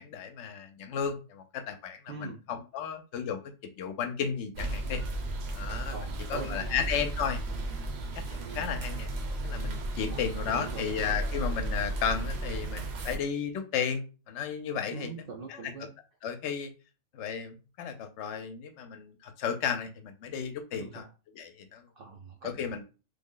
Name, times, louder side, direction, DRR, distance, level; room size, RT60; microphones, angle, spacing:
voice 1, 0.0-3.4 3.8-5.0 5.5-7.4 8.2-9.1 9.4-15.1 15.5-15.6 16.2-16.7 17.1-21.0 21.3-21.8 22.4-22.8, left 7 dB, 65° left, 7 dB, 0.8 m, -34 dB
voice 2, 2.1-2.4 5.9-6.9 8.4-8.7 10.1-11.0 14.9-15.9 20.8-21.1 22.0-22.7, right 4 dB, 80° right, 2 dB, 0.5 m, -42 dB
sound 1, 4.6-13.2, right 2 dB, 60° right, 0.8 m, -34 dB
3.3 x 2.1 x 3.7 m, 0.32 s
omnidirectional pair, 1.5 m